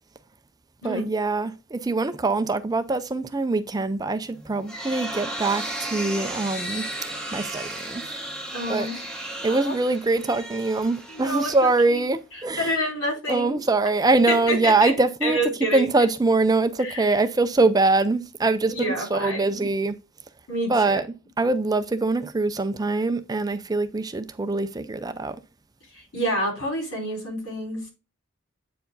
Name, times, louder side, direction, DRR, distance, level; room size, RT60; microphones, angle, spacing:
voice 1, 0.8-6.8 7.3-8.0 8.7-8.9 9.4-12.7 13.3-15.4 15.7-19.9 20.7-21.0 21.4-25.4, right 3 dB, 20° right, 0.4 m, -23 dB
sound 1, 4.3-12.2, right 1 dB, 5° left, 1.2 m, -35 dB
voice 2, 8.5-9.0 9.4-9.7 11.1-11.5 11.9-12.1 12.6-13.6 14.3-14.9 15.2-15.9 16.8-17.1 18.7-19.7 20.5-21.0 25.9-27.8, equal, 75° left, 5.0 m, -28 dB
8.3 x 4.7 x 3.9 m
head